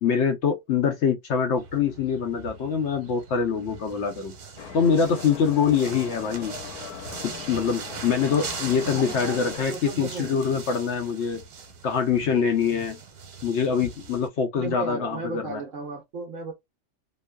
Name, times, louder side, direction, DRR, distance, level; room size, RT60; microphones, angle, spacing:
voice 1, 0.0-4.3 4.7-6.5 7.5-11.4 11.8-13.0 13.4-15.6, left 6 dB, 65° left, 0.7 m, -24 dB
sound 1, 1.6-14.3, right 5 dB, 85° right, 1.3 m, -41 dB
sound 2, 4.6-9.7, left 8 dB, 90° left, 1.1 m, -40 dB
voice 2, 8.8-10.4 14.5-16.5, right 4 dB, 60° right, 1.1 m, -35 dB
2.9 x 2.0 x 2.2 m
omnidirectional pair, 1.6 m